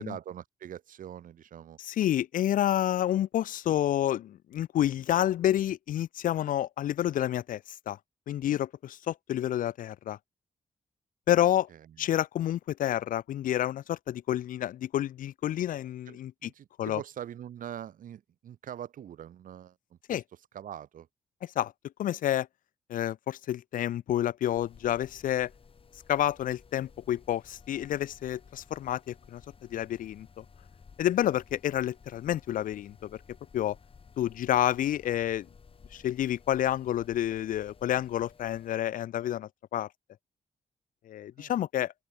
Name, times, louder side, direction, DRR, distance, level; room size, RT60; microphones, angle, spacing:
voice 1, 0.0-1.8 11.7-12.1 16.1-20.2 20.5-21.1 35.9-36.0 41.4-41.5, right 10 dB, 85° right, 4.1 m, -43 dB
voice 2, 1.8-8.0 8.3-10.2 11.3-11.7 12.0-16.5 16.8-17.0 20.1-20.2 21.6-21.7 22.0-22.5 22.9-25.5 26.1-29.4 29.7-30.4 31.0-33.2 33.5-33.8 34.2-35.5 35.9-39.9 41.1-41.9, left 12 dB, 80° left, 0.5 m, -29 dB
sound 1, 24.5-38.7, left 5 dB, 40° left, 5.6 m, -56 dB
open air
wide cardioid pair, 125°, 14 cm